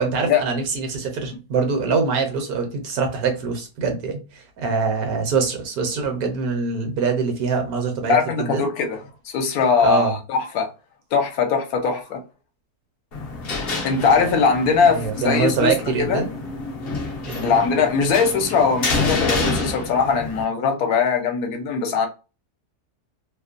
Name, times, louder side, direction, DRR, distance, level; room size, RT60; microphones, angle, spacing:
voice 1, 0.0-8.6 9.8-10.1 14.9-16.3 17.3-17.4, right 5 dB, 70° right, 1.2 m, -24 dB
voice 2, 8.1-9.0 9.2-10.7 11.1-12.2 13.8-16.2 17.4-22.1, left 5 dB, 70° left, 1.1 m, -20 dB
sound 1, 13.1-20.4, left 3 dB, 50° left, 0.7 m, -28 dB
2.9 x 2.1 x 2.4 m
omnidirectional pair, 1.7 m